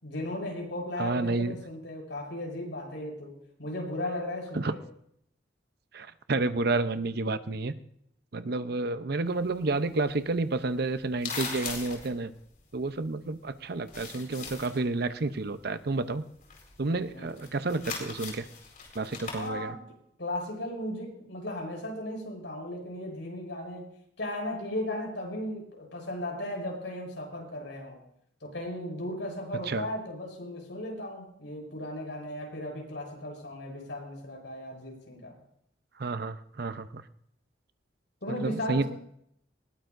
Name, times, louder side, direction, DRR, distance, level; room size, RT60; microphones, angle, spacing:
voice 1, 0.0-3.3 3.6-4.8 17.1-17.4 19.3-19.8 20.2-23.9 24.2-28.0 28.4-35.3 38.2-38.9, left 1 dB, 80° left, 1 dB, 6.2 m, -36 dB
voice 2, 1.0-1.6 4.5-4.7 5.9-7.7 8.3-12.3 12.7-16.2 16.8-18.5 18.9-19.7 29.7-29.8 36.0-37.0 38.4-38.8, right 3 dB, 60° right, 11 dB, 0.7 m, -30 dB
paper shuffle, 9.3-13.5 13.8-14.9 15.1-19.5, left 5 dB, 50° left, 4.3 m, -40 dB
20.0 x 17.5 x 2.6 m, 0.71 s
head